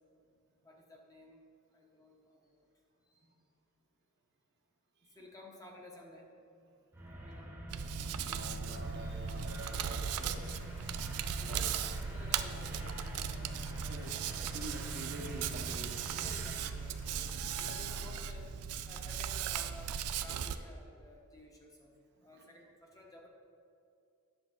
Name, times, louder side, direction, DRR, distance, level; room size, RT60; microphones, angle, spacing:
voice 1, 0.6-1.4 1.7-2.7 3.1-3.2 5.0-6.3 7.2-7.5 11.4-14.0 16.1-18.5 18.9-23.3, left 1 dB, 15° left, -1 dB, 1.1 m, -54 dB
sound 1, 6.9-16.5, right 1 dB, 10° right, 1.1 m, -47 dB
Hands, 7.7-20.6, right 7 dB, 85° right, 0.4 m, -38 dB
voice 2, 7.9-10.6 11.4-11.6 13.7-16.1 22.2-22.5, right 1 dB, 50° right, 0 dB, 1.0 m, -48 dB
sound 2, 8.8-18.0, left 2 dB, 90° left, 1.7 m, -56 dB
9.9 x 6.7 x 3.8 m, 2.5 s
head